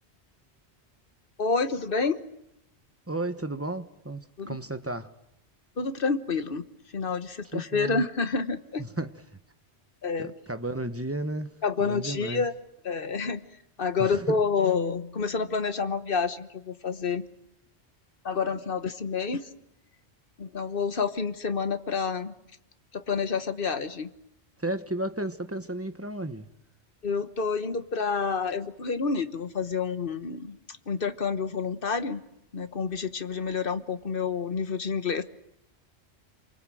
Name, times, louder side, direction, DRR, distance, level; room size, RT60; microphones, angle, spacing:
voice 1, 1.4-2.2 4.4-4.6 5.8-6.6 6.9-8.8 10.0-10.3 11.6-12.5 12.8-13.5 13.8-17.2 18.2-19.5 20.4-22.3 22.9-24.1 27.0-30.6 30.9-32.2 32.5-35.2, left 5 dB, 55° left, 1.5 m, -28 dB
voice 2, 3.1-5.1 7.5-8.0 8.8-9.1 10.2-12.4 14.0-14.4 24.6-26.5, right 1 dB, 15° right, 1.1 m, -33 dB
28.0 x 24.0 x 7.8 m
omnidirectional pair, 1.1 m